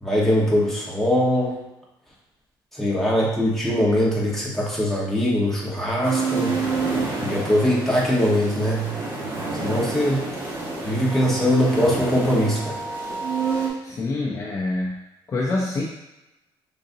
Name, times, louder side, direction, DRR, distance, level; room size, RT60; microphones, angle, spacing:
voice 1, 0.0-1.6 2.7-6.5 7.2-9.0 9.6-10.3 10.8-12.8, equal, 5° left, -5 dB, 1.1 m, -21 dB
sound 1, 6.0-13.7, right 4 dB, 30° right, 1.2 m, -28 dB
voice 2, 13.8-15.0 15.3-15.8, left 2 dB, 35° left, -3 dB, 0.5 m, -26 dB
5.1 x 3.8 x 2.7 m, 0.96 s
cardioid pair, 145°, 9 cm